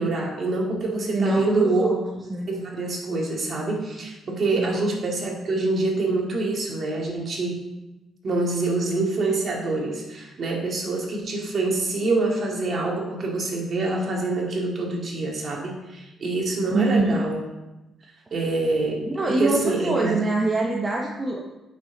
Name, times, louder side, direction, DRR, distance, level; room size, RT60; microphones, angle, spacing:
voice 1, 0.0-1.9 2.5-7.6 8.2-17.4 18.3-20.2, right 2 dB, 50° right, -1 dB, 2.4 m, -26 dB
voice 2, 1.1-2.0 2.3-2.5 4.6-4.8 16.7-17.2 19.1-21.5, right 2 dB, 25° right, -1 dB, 1.1 m, -24 dB
9.5 x 6.0 x 4.0 m, 1.0 s
cardioid pair, 90°, 0 cm